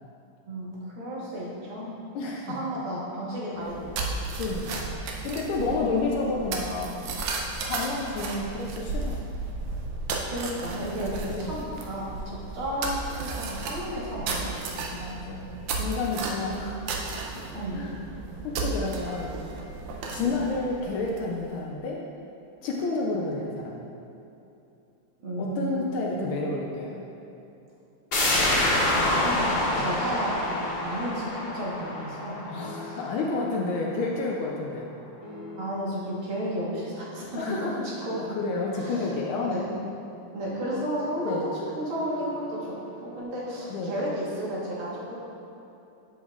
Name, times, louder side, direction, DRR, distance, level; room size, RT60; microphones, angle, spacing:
voice 1, 0.5-1.9 2.5-4.1 5.6-5.8 10.2-14.6 17.5-17.8 20.2-20.3 25.2-26.2 28.8-32.4 32.8-33.0 35.6-37.3 38.0-38.2 38.7-39.7 40.3-45.2, equal, 70° right, -6 dB, 2.2 m, -33 dB
voice 2, 1.8-2.5 4.4-5.0 5.2-6.9 7.6-9.2 11.3-11.5 14.9-16.8 17.7-18.0 18.4-19.3 20.1-22.0 22.6-23.8 25.4-27.0 29.7-29.9 32.5-34.9 37.4-37.8 38.4-39.6 41.2-41.4 43.7-44.0, left 3 dB, 80° left, -2 dB, 1.5 m, -30 dB
sound 1, 3.6-21.5, right 3 dB, 90° right, 1.6 m, -34 dB
sound 2, 28.1-33.6 33.9-34.0, left 1 dB, 55° left, 1.8 m, -27 dB
sound 3, 32.5-33.3 35.2-36.0 37.9-38.7 40.5-43.2, equal, 15° right, 1.0 m, -43 dB
7.2 x 7.0 x 2.4 m, 2.8 s
omnidirectional pair, 2.3 m